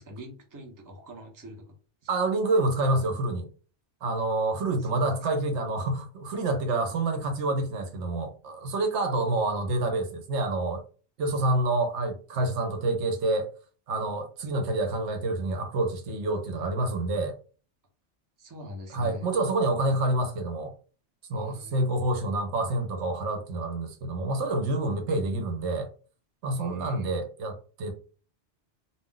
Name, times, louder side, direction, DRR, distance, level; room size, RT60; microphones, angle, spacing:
voice 1, 0.0-1.8 4.2-4.3 4.8-5.1 18.4-19.3 21.3-21.8 26.6-27.1, left 1 dB, 20° right, 0.6 m, -44 dB
voice 2, 2.1-3.5 4.0-10.8 11.2-13.5 13.9-17.3 18.9-20.7 21.3-25.9 26.4-27.9, right 2 dB, 80° right, 1.0 m, -27 dB
2.4 x 2.1 x 3.7 m
omnidirectional pair, 1.2 m